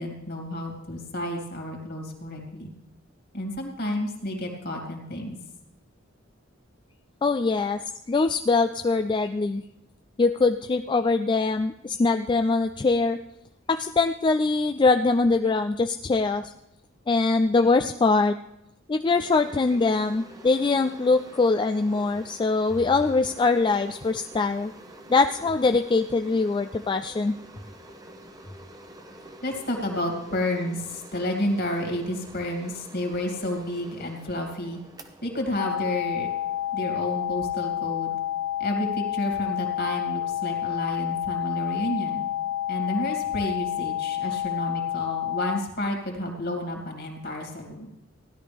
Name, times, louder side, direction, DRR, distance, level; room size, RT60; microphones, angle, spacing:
voice 1, 0.0-2.7 3.3-5.4 29.4-34.8 35.2-36.3 36.7-38.2 38.6-42.2 42.7-47.9, left 1 dB, 55° left, 2 dB, 2.5 m, -30 dB
voice 2, 7.2-7.8 8.1-9.6 10.2-13.2 13.7-16.5 17.1-18.4 18.9-24.7 25.1-27.4, left 3 dB, 25° left, 7 dB, 0.3 m, -23 dB
sound 1, 19.1-37.5, right 1 dB, 20° right, 0.9 m, -48 dB
sound 2, 35.6-45.6, left 12 dB, 80° left, 0.9 m, -29 dB
16.0 x 11.5 x 3.5 m, 0.90 s
head